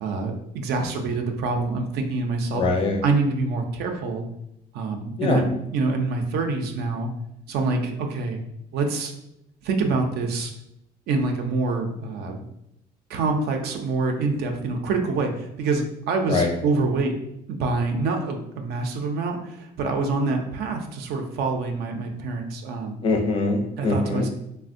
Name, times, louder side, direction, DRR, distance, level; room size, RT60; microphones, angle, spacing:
voice 1, 0.0-2.7 3.0-4.3 4.7-7.1 7.5-8.4 8.7-9.1 9.6-10.5 11.1-12.4 13.1-17.1 17.5-23.1 23.8-24.3, right 3 dB, 75° right, 4 dB, 0.5 m, -26 dB
voice 2, 2.5-3.0 5.2-5.4 16.3-16.5 23.0-24.3, left 3 dB, 30° left, 3 dB, 0.4 m, -23 dB
3.3 x 2.1 x 2.5 m, 0.81 s
cardioid pair, 110°, 17 cm